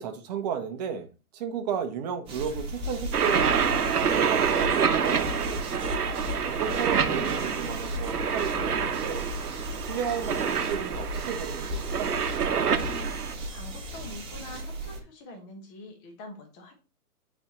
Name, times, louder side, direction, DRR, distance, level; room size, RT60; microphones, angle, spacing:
voice 1, 0.0-5.7 6.4-9.3 9.8-12.1, right 7 dB, 25° right, 0.9 m, -33 dB
sound 1, 2.3-15.0, equal, 10° right, 1.3 m, -36 dB
sound 2, 3.1-13.3, right 7 dB, 75° right, 1.0 m, -27 dB
voice 2, 12.7-13.2 13.5-16.8, left 2 dB, 25° left, 1.3 m, -45 dB
9.6 x 4.4 x 3.1 m
hypercardioid pair, 135°, 46 cm